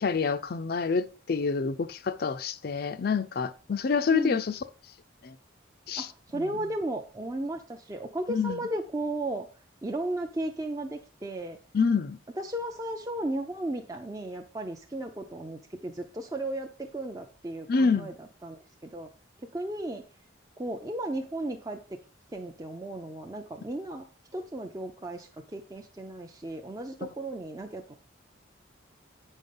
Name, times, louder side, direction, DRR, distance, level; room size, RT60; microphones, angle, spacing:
voice 1, 0.0-4.6 5.2-5.3 5.9-6.1 6.3-6.4 8.3-8.6 11.7-12.2 17.7-18.1, left 5 dB, 50° left, 0.4 m, -27 dB
voice 2, 6.0-9.5 9.8-11.6 12.4-19.1 19.5-20.0 20.6-22.0 22.3-24.1 24.3-28.0, right 1 dB, 15° right, 0.5 m, -35 dB
8.4 x 5.4 x 5.3 m
head